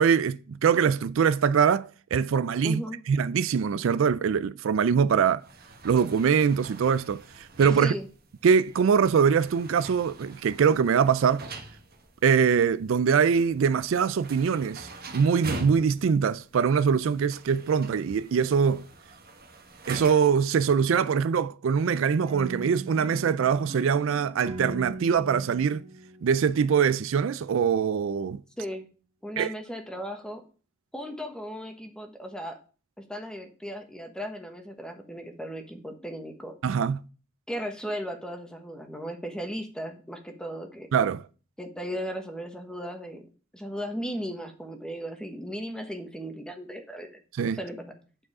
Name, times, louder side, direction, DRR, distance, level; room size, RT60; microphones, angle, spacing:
voice 1, 0.0-2.8 3.1-5.4 5.8-7.9 8.4-11.4 12.2-18.8 19.9-25.8 26.2-28.4 29.4-29.5 36.6-37.0 40.9-41.2 47.4-47.6, right 6 dB, 70° right, 0.4 m, -23 dB
voice 2, 2.6-3.0 7.7-8.1 28.6-28.9 29.2-30.4 30.9-32.6 33.0-36.5 37.5-40.9 41.6-43.2 43.5-47.2 47.5-47.9, equal, 5° left, 1.2 m, -36 dB
sound 1, 5.4-20.5, right 2 dB, 50° right, 1.2 m, -44 dB
sound 2, 22.3-27.2, right 2 dB, 25° right, 1.7 m, -41 dB
8.8 x 4.7 x 4.8 m
head